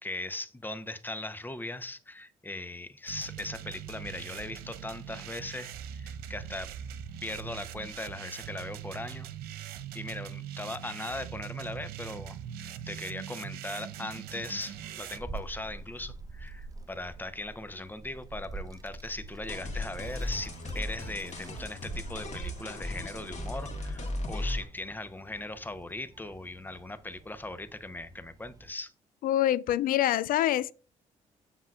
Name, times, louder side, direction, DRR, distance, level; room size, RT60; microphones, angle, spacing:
voice 1, 0.0-6.7 7.2-9.3 9.5-28.9, left 2 dB, 10° left, 0.8 m, -39 dB
sound 1, 3.1-15.2, right 10 dB, 75° right, 0.6 m, -42 dB
Child speech kid speaking, 14.3-28.7, right 3 dB, 20° right, 0.7 m, -46 dB
sound 2, 19.5-24.7, left 1 dB, 45° left, 1.7 m, -36 dB
voice 2, 29.2-30.7, left 12 dB, 65° left, 0.4 m, -25 dB
7.6 x 5.5 x 2.4 m
hypercardioid pair, 50°, 16 cm